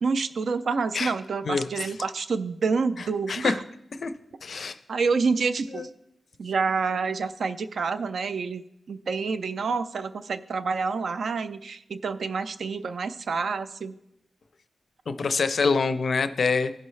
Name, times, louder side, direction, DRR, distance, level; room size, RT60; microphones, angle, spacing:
voice 1, 0.0-3.6 4.9-5.9 6.4-14.0, right 4 dB, 60° right, 11 dB, 0.4 m, -28 dB
voice 2, 1.4-1.9 3.3-3.5 4.0-4.1 4.4-4.8 5.8-5.9 15.1-16.7, left 4 dB, 50° left, 10 dB, 0.5 m, -25 dB
16.0 x 5.5 x 3.2 m, 0.82 s
wide cardioid pair, 170°, 0 cm